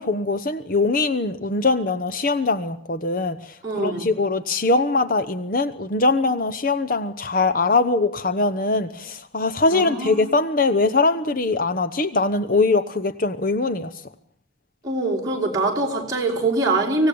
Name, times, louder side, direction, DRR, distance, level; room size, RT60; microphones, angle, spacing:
voice 1, 0.0-13.9, left 3 dB, 45° left, 10 dB, 1.0 m, -22 dB
voice 2, 3.6-4.0 9.7-10.3 14.8-17.1, right 2 dB, 20° right, -4 dB, 5.1 m, -23 dB
25.0 x 17.5 x 8.7 m, 0.67 s
head